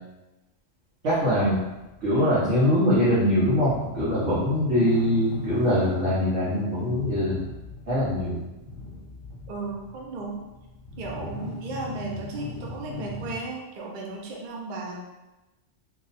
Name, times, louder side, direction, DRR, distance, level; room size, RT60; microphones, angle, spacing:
voice 1, 1.0-1.6 2.0-7.5 7.9-8.4, equal, 90° right, -11 dB, 1.4 m, -23 dB
sound 1, 1.1-13.4, left 2 dB, 50° left, 0.8 m, -40 dB
voice 2, 9.5-10.4 11.0-15.0, right 3 dB, 50° right, -2 dB, 0.6 m, -35 dB
3.0 x 2.3 x 3.9 m, 1.0 s
omnidirectional pair, 1.3 m